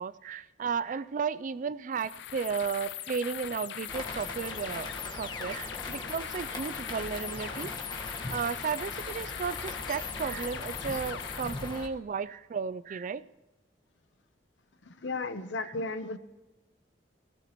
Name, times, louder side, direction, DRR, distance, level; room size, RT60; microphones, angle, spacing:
voice 1, 0.0-7.7 8.3-13.2 15.6-15.7, right 6 dB, 45° right, 15 dB, 0.4 m, -34 dB
sound 1, 1.9-11.8, left 11 dB, 70° left, 0.4 m, -40 dB
sound 2, 3.9-11.9, left 1 dB, 25° left, 1.4 m, -40 dB
voice 2, 14.8-16.2, left 3 dB, 85° left, 11 dB, 0.9 m, -35 dB
19.0 x 15.0 x 3.0 m, 1.1 s
head